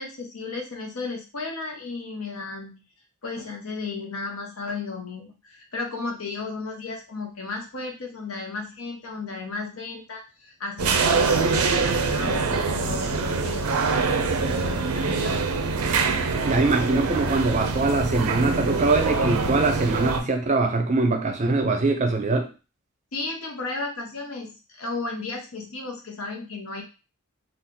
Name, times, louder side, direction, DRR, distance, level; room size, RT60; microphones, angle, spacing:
voice 1, 0.0-2.8 3.2-13.6 14.0-15.5 23.1-26.8, left 3 dB, 80° left, 2 dB, 0.9 m, -34 dB
sound 1, 10.8-20.2, right 4 dB, 90° right, 0.5 m, -24 dB
voice 2, 16.4-22.5, right 3 dB, 30° right, 4 dB, 0.5 m, -23 dB
2.8 x 2.4 x 3.7 m, 0.31 s
head